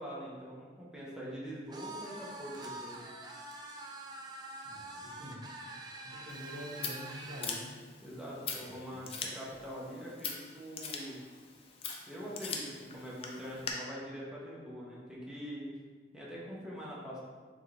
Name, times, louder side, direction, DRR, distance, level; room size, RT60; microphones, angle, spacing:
voice 1, 0.0-3.0 8.0-11.2 12.1-15.7 16.1-17.2, equal, 5° right, -6 dB, 0.9 m, -44 dB
sound 1, 1.7-7.6, right 2 dB, 25° right, 0.4 m, -45 dB
voice 2, 4.6-5.4 6.0-7.7 8.6-9.1, equal, 80° right, -5 dB, 1.3 m, -46 dB
Scissors, 6.3-13.7, left 5 dB, 35° left, 0.5 m, -43 dB
4.0 x 3.6 x 3.3 m, 1.5 s
head